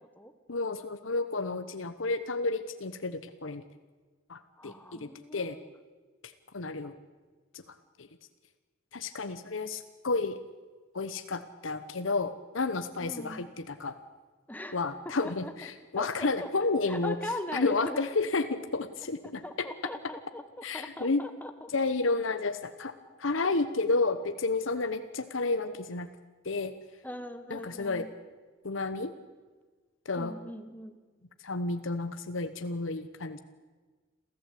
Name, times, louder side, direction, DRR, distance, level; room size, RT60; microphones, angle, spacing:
voice 1, 0.5-3.6 4.3-5.6 6.2-6.9 7.5-8.1 8.9-10.4 10.9-14.0 14.7-17.2 17.5-19.7 20.6-21.2 21.7-26.1 26.4-26.7 27.5-28.1 28.6-29.1 30.0-30.3 31.4-33.4, left 3 dB, 90° left, 10 dB, 1.0 m, -31 dB
voice 2, 4.6-5.7 13.0-13.4 14.5-14.8 15.0-15.5 16.0-16.5 16.9-18.0 19.4-20.4 20.7-21.5 27.0-28.1 30.2-31.0, left 1 dB, 10° left, 8 dB, 1.4 m, -40 dB
27.5 x 14.5 x 8.4 m, 1.4 s
head